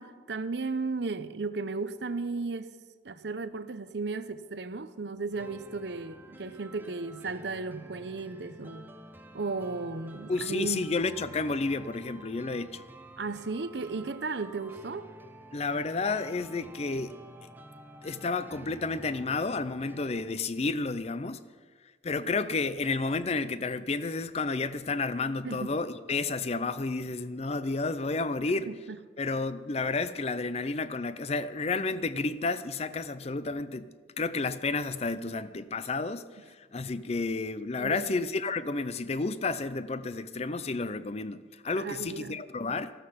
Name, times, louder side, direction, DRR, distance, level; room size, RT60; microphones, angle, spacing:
voice 1, 0.0-2.7 3.0-8.9 9.3-10.9 13.2-15.1 25.4-25.7 28.7-29.0 37.8-38.1 41.7-42.4, right 3 dB, 65° right, 12 dB, 0.7 m, -35 dB
sound 1, 5.3-20.3, right 1 dB, 10° right, 0.8 m, -50 dB
voice 2, 10.3-12.8 15.5-17.1 18.0-21.4 22.0-28.7 29.2-42.9, left 3 dB, 35° left, 14 dB, 0.5 m, -31 dB
14.0 x 12.5 x 5.7 m, 1.5 s
head